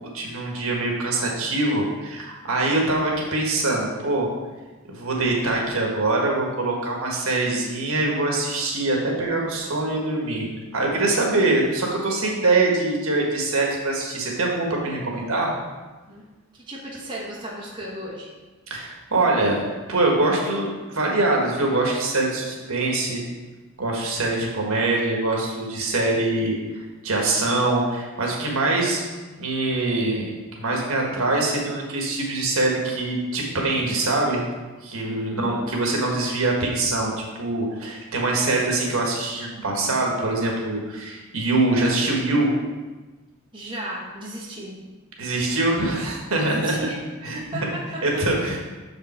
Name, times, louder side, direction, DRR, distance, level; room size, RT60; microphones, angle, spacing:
voice 1, 0.1-4.3 4.9-15.5 18.7-19.6 19.9-23.3 23.8-26.6 27.0-29.0 29.4-30.3 30.5-34.4 34.8-37.1 37.4-42.5 45.2-46.7 47.2-47.4 48.0-48.6, right 2 dB, 75° right, -1 dB, 1.5 m, -23 dB
voice 2, 16.1-18.3 35.1-35.7 43.5-44.9 46.4-47.0 47.3-48.4, right 1 dB, 20° right, -4 dB, 1.1 m, -35 dB
6.5 x 5.1 x 4.3 m, 1.2 s
head